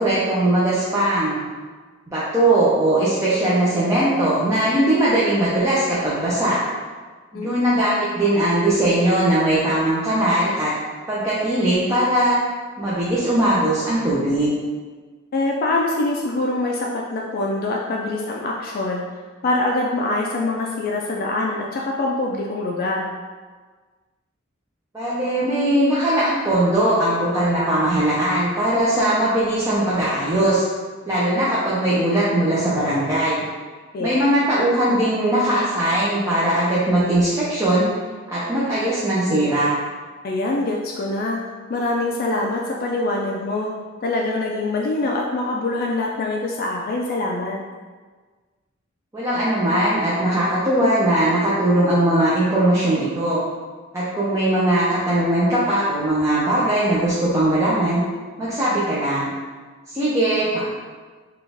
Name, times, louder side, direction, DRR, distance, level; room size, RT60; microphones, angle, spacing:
voice 1, 0.0-1.4 2.1-6.6 7.3-10.7 11.1-12.4 12.8-14.5 24.9-30.6 31.1-33.4 34.0-37.9 38.3-39.7 49.1-53.4 53.9-58.0 58.4-59.3 59.9-60.6, right 1 dB, 15° right, -9 dB, 0.6 m, -20 dB
voice 2, 15.3-19.1 19.4-23.1 33.9-34.1 40.2-41.4 41.7-43.7 44.0-47.6, left 2 dB, 45° left, -1 dB, 0.3 m, -24 dB
4.1 x 2.3 x 3.4 m, 1.4 s
head